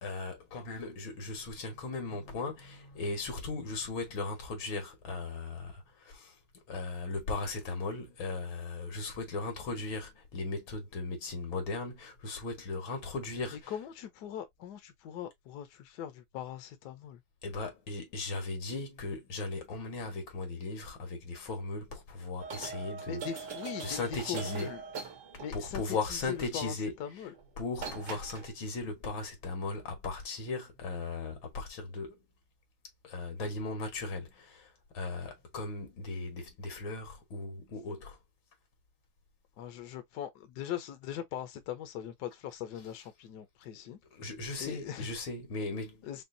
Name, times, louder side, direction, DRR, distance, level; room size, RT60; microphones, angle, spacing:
voice 1, 0.0-6.3 6.7-13.7 17.4-23.3 23.8-24.7 25.5-26.9 27.6-32.2 33.0-38.2 44.1-46.1, left 3 dB, 85° left, 2.2 m, -37 dB
voice 2, 13.5-17.2 23.1-24.8 25.4-27.3 39.6-44.0 44.6-45.1 46.0-46.2, left 9 dB, 65° left, 1.2 m, -41 dB
sound 1, 22.4-25.8 27.3-27.5 27.8-28.5, right 5 dB, 60° right, 1.9 m, -42 dB
5.3 x 2.4 x 2.6 m
omnidirectional pair, 2.1 m